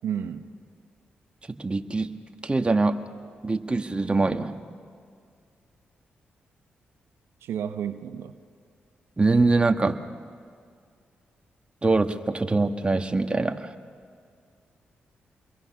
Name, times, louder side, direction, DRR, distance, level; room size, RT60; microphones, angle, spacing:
voice 1, 0.0-0.5 7.4-8.4, right 8 dB, 80° right, 8 dB, 0.9 m, -31 dB
voice 2, 1.6-2.1 2.4-2.9 3.4-4.6 9.2-10.0 11.8-13.7, right 3 dB, 25° right, 6 dB, 1.5 m, -23 dB
27.5 x 22.0 x 6.0 m, 2.2 s
supercardioid pair, 50°, 4 cm